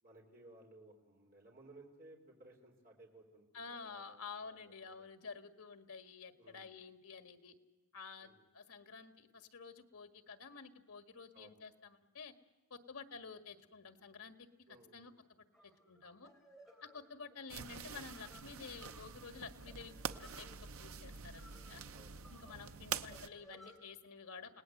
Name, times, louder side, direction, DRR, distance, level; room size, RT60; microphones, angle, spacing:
voice 1, 0.0-5.2 6.3-6.7 8.2-8.5 11.3-11.6 14.7-15.1 21.9-22.4, right 2 dB, 40° right, 0 dB, 4.1 m, -60 dB
voice 2, 3.5-7.5 7.9-12.3 12.7-14.4 14.9-16.3 16.8-20.5 20.8-21.8 22.3-24.6, left 5 dB, 85° left, 8 dB, 1.8 m, -51 dB
sound 1, 15.5-23.8, equal, ahead, 3.9 m, -61 dB
sound 2, 17.5-23.3, right 6 dB, 80° right, 0.9 m, -46 dB
29.5 x 18.5 x 7.9 m, 1.2 s
head